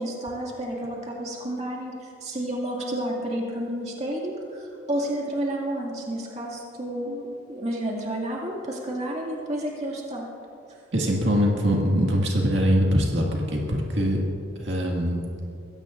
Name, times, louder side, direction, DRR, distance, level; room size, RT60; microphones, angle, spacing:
voice 1, 0.0-10.3, right 1 dB, 35° right, -2 dB, 2.2 m, -31 dB
voice 2, 10.9-14.2 14.6-15.2, equal, 65° right, -1 dB, 2.0 m, -23 dB
22.5 x 16.5 x 2.6 m, 2.6 s
head